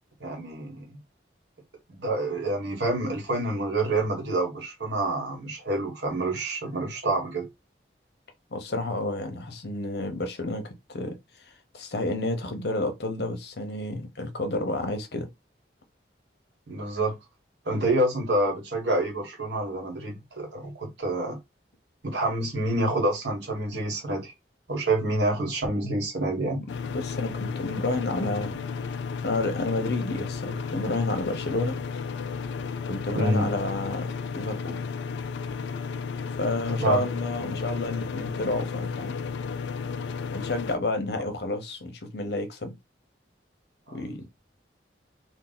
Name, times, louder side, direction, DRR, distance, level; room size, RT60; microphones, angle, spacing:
voice 1, 0.2-1.0 1.9-7.5 16.7-17.2 17.6-21.4 22.0-24.3 24.7-26.6 33.1-33.5 36.8-37.0 43.9-44.2, right 2 dB, 80° right, 1.3 m, -27 dB
voice 2, 8.5-10.6 10.9-11.2 11.5-15.3 26.9-28.6 29.2-31.8 32.9-34.8 36.4-39.2 40.3-42.7 43.9-44.2, left 2 dB, 65° left, 0.8 m, -30 dB
sound 1, 26.7-40.8, left 5 dB, 80° left, 0.3 m, -33 dB
2.6 x 2.3 x 3.9 m
head